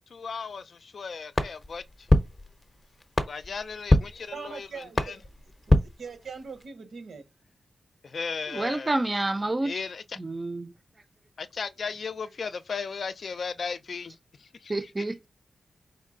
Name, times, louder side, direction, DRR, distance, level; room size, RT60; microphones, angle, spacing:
voice 1, 0.1-2.1 3.3-5.2 8.0-8.9 9.6-10.2 11.4-15.1, left 5 dB, 60° left, 0.4 m, -36 dB
sound 1, 1.3-6.7, left 1 dB, 25° left, 0.6 m, -27 dB
voice 2, 4.3-5.2 5.7-7.3, right 5 dB, 80° right, 0.9 m, -41 dB
voice 3, 8.5-9.7 10.2-10.7 14.7-15.3, right 2 dB, 20° right, 0.4 m, -28 dB
4.5 x 3.2 x 3.7 m
wide cardioid pair, 145°, 0 cm